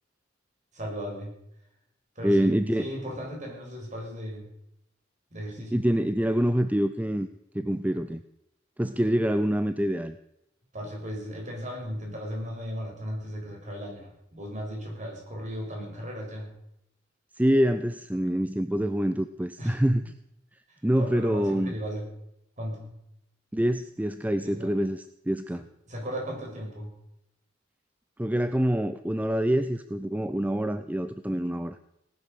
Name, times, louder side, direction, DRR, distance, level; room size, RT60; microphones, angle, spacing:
voice 1, 0.7-1.3 2.2-4.5 5.3-5.8 10.7-16.5 19.6-19.8 21.0-22.1 22.6-22.9 24.4-24.7 25.9-26.9, equal, 40° right, 0 dB, 6.6 m, -36 dB
voice 2, 2.2-2.8 5.7-7.3 7.5-8.2 8.8-10.2 17.4-20.1 20.8-21.7 23.5-25.6 28.2-31.8, equal, 10° right, 11 dB, 0.5 m, -26 dB
18.5 x 11.0 x 6.8 m, 0.81 s
head